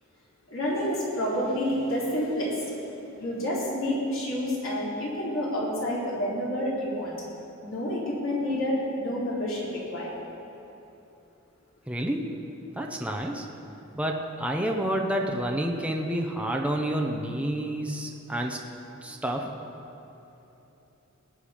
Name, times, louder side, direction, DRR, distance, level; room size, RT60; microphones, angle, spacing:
voice 1, 0.5-2.9 3.2-7.1 7.6-10.1, equal, 70° left, -5 dB, 3.8 m, -29 dB
voice 2, 11.9-12.3 12.7-13.5 13.9-18.6 19.0-19.5, right 1 dB, 5° right, 1 dB, 0.8 m, -29 dB
20.0 x 8.9 x 5.1 m, 3.0 s
head